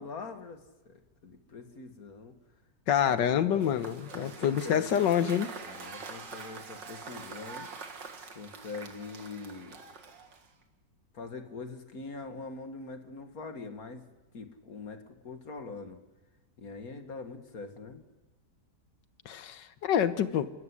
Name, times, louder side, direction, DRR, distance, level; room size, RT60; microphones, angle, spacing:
voice 1, 0.0-2.3 3.0-3.8 4.1-4.9 5.6-7.7 8.3-9.8 11.1-14.1 14.3-16.0 16.6-18.0, left 4 dB, 55° left, 6 dB, 2.2 m, -43 dB
voice 2, 2.9-5.5 19.3-20.5, left 9 dB, 80° left, 12 dB, 1.7 m, -27 dB
Cheering / Applause / Crowd, 3.5-10.6, right 5 dB, 90° right, 2.6 m, -45 dB
28.5 x 14.0 x 9.9 m, 1.1 s
omnidirectional pair, 1.9 m